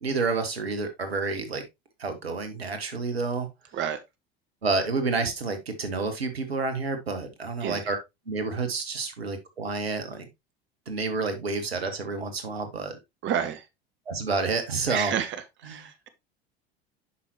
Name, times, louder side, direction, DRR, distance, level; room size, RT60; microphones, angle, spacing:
voice 1, 0.0-1.6 2.0-3.5 4.6-8.0 8.3-10.3 10.9-13.0 14.1-15.1 15.7-15.8, right 4 dB, 80° right, 1.4 m, -29 dB
voice 2, 13.2-13.7 14.9-16.1, right 9 dB, 40° right, 1.0 m, -30 dB
8.3 x 5.9 x 2.8 m
figure-of-eight pair, 70°, 30 cm